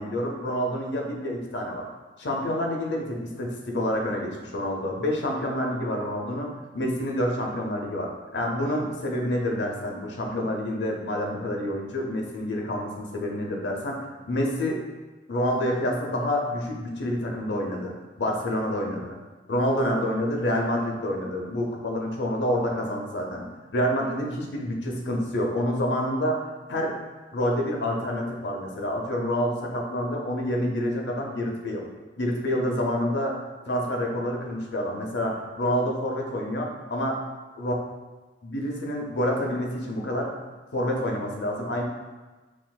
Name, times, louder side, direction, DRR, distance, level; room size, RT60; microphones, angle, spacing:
voice 1, 0.0-1.9 2.2-6.5 6.7-14.0 14.3-14.8 15.3-19.2 19.5-23.4 23.7-26.4 26.7-27.0 27.3-31.9 32.2-33.4 33.7-37.2 37.6-37.7 38.4-40.3 40.7-41.8, equal, 85° left, 0 dB, 0.7 m, -28 dB
6.0 x 2.6 x 2.3 m, 1.2 s
head